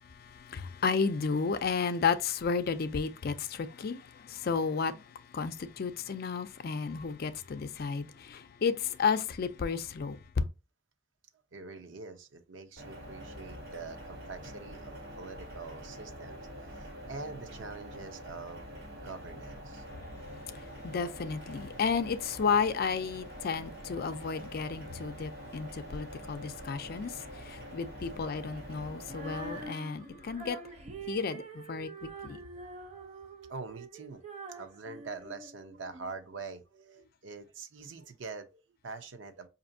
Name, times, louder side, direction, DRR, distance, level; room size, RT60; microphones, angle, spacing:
voice 1, 0.0-10.5 20.5-30.6 31.1-32.4, left 5 dB, 55° left, 0.4 m, -32 dB
voice 2, 11.5-16.4 16.7-19.8 33.5-34.2 34.5-39.5, right 4 dB, 90° right, 0.7 m, -45 dB
sound 1, 12.8-29.7, equal, 55° right, 1.8 m, -45 dB
Female singing, 29.1-36.1, right 4 dB, 35° right, 0.6 m, -45 dB
5.1 x 2.6 x 2.6 m
head